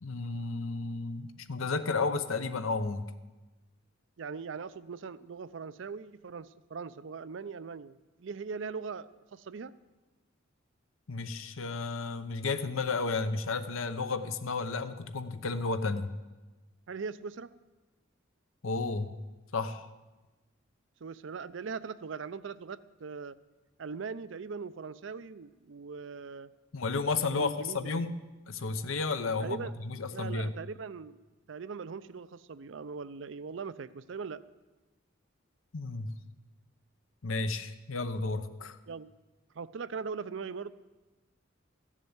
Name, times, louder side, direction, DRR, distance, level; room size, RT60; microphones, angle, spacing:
voice 1, 0.0-3.1 11.1-16.1 18.6-19.1 19.5-19.9 26.7-28.2 28.5-30.5 35.7-36.2 37.2-38.8, left 3 dB, 85° left, 10 dB, 0.8 m, -32 dB
voice 2, 4.2-9.7 16.9-17.5 21.0-23.4 23.8-26.5 27.3-28.0 29.4-29.7 30.1-31.2 31.5-34.4 38.9-39.1 39.6-40.7, right 5 dB, 65° right, 15 dB, 0.5 m, -40 dB
14.0 x 7.4 x 8.0 m, 1.2 s
head